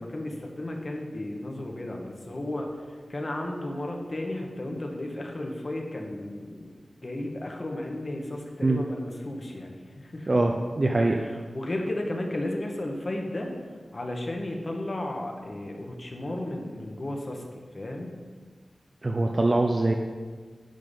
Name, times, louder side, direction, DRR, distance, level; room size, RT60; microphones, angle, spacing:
voice 1, 0.0-2.7 3.1-6.7 7.0-10.4 11.2-13.5 13.9-18.1, left 1 dB, 40° left, 1 dB, 1.2 m, -34 dB
voice 2, 10.3-11.2 19.0-19.9, right 2 dB, 40° right, 2 dB, 0.5 m, -23 dB
10.5 x 3.7 x 5.4 m, 1.5 s
wide cardioid pair, 85°, 0 cm